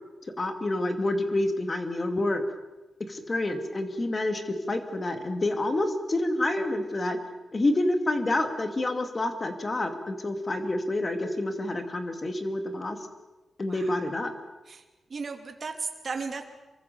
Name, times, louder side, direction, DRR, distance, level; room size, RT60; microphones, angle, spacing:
voice 1, 0.4-2.4 3.1-7.2 7.5-13.0 13.6-14.3, left 2 dB, 25° left, 6 dB, 2.6 m, -28 dB
voice 2, 13.6-14.0 14.7-14.8 15.1-16.5, right 4 dB, 35° right, 5 dB, 2.9 m, -35 dB
28.0 x 23.5 x 7.1 m, 1.1 s
wide cardioid pair, 175°, 0 cm